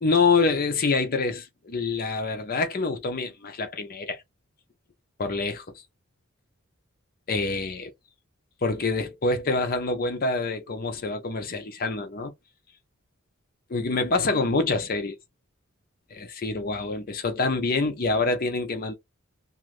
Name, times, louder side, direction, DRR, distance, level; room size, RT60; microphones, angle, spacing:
voice 1, 0.0-4.2 5.2-5.6 7.3-7.9 8.6-12.3 13.7-15.2 16.1-18.9, left 3 dB, 45° left, 0.6 m, -26 dB
2.5 x 2.5 x 3.1 m
head